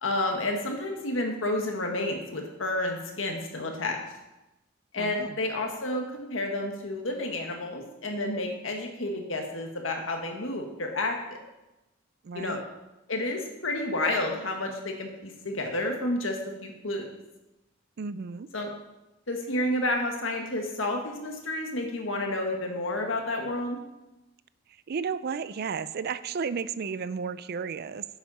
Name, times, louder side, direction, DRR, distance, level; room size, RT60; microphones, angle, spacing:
voice 1, 0.0-4.0 4.9-11.4 12.3-12.6 13.1-17.0 18.5-18.7 19.3-23.8, left 1 dB, 75° left, 2 dB, 1.7 m, -30 dB
voice 2, 5.0-5.4 12.2-12.6 18.0-18.5 24.9-28.1, right 5 dB, 55° right, 15 dB, 0.4 m, -33 dB
10.5 x 8.1 x 4.2 m, 0.99 s
head